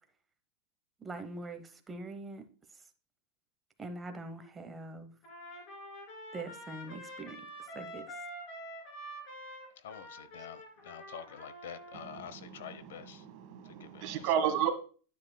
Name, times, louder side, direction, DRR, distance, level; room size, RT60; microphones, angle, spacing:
voice 1, 1.0-2.5 3.8-5.1 6.3-7.5 7.7-8.0, right 2 dB, 10° right, 0.9 m, -43 dB
Trumpet, 5.2-12.3, equal, 35° left, 2.7 m, -47 dB
voice 2, 9.8-13.2 13.8-14.2, left 8 dB, 90° left, 0.8 m, -47 dB
voice 3, 11.9-14.7, right 9 dB, 45° right, 1.5 m, -34 dB
9.7 x 9.4 x 2.2 m
supercardioid pair, 160°, 0 cm